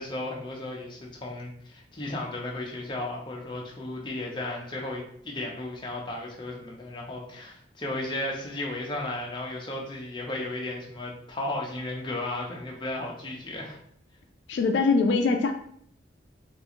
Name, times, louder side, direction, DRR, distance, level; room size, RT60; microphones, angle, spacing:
voice 1, 0.0-13.8, left 2 dB, 25° left, -1 dB, 0.6 m, -34 dB
voice 2, 14.5-15.5, left 4 dB, 75° left, 6 dB, 0.3 m, -22 dB
3.6 x 2.4 x 2.9 m, 0.65 s
head